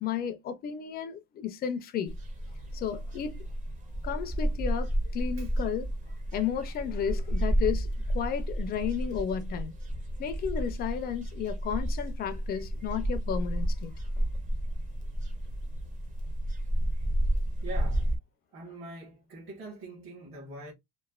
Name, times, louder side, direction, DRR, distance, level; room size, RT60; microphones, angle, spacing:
voice 1, 0.0-2.1 2.7-3.4 4.0-5.9 6.3-9.8 10.2-13.9, left 8 dB, 30° left, 0.4 m, -33 dB
sound 1, 2.1-18.2, right 1 dB, 25° right, 0.6 m, -31 dB
voice 2, 17.6-18.1 18.5-20.7, right 2 dB, 40° right, 1.2 m, -43 dB
3.1 x 2.1 x 2.3 m
cardioid pair, 145°, 32 cm